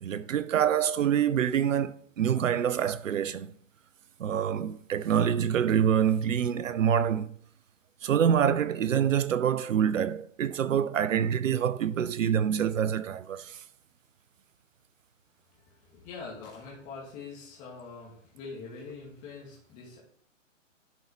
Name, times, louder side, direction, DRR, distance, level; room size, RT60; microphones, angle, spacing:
voice 1, 0.0-3.6 4.2-7.4 8.0-13.6, right 9 dB, 75° right, 0.6 m, -26 dB
voice 2, 15.5-20.0, left 4 dB, 20° left, 2.1 m, -44 dB
11.0 x 5.4 x 3.0 m
hypercardioid pair, 145°, 39 cm